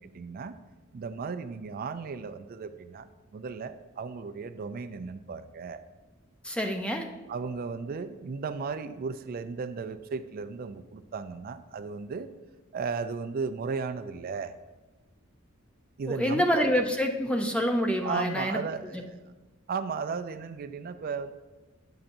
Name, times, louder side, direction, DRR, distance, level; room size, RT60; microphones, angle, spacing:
voice 1, 0.0-0.5 0.9-5.8 7.3-12.3 12.7-14.5 16.0-16.7 18.0-19.2 19.7-21.3, right 5 dB, 45° right, 11 dB, 0.4 m, -35 dB
voice 2, 6.4-7.0 16.0-18.6 18.9-19.0, equal, 5° left, 4 dB, 0.5 m, -27 dB
8.7 x 6.9 x 2.6 m, 1.2 s
head